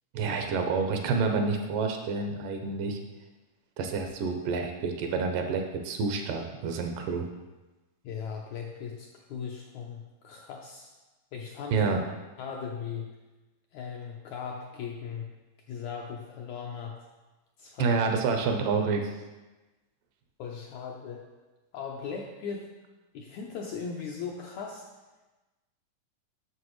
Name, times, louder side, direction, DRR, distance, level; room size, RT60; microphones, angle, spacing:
voice 1, 0.1-3.0 3.8-7.3 11.7-12.0 17.8-19.0, right 4 dB, 80° right, 4 dB, 2.3 m, -28 dB
voice 2, 8.0-10.9 11.3-11.9 12.4-13.1 13.7-15.3 15.7-17.0 17.6-18.0 20.4-21.3 21.7-22.7 23.1-24.8, left 6 dB, 80° left, 0 dB, 1.7 m, -38 dB
9.4 x 6.6 x 3.1 m, 1.1 s
omnidirectional pair, 3.9 m